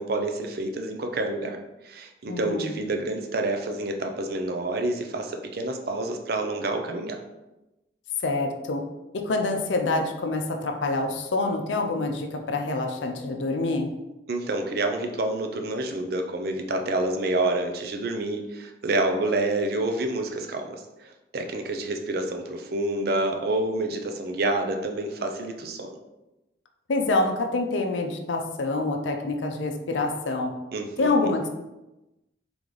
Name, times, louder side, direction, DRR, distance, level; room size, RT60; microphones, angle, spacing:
voice 1, 0.0-1.6 1.8-7.2 14.3-25.9 30.7-31.3, right 2 dB, 55° right, 5 dB, 0.5 m, -28 dB
voice 2, 2.3-2.7 8.2-8.8 9.2-13.9 26.9-30.5 31.0-31.5, left 2 dB, 80° left, 3 dB, 0.5 m, -26 dB
3.8 x 3.4 x 3.1 m, 0.99 s
head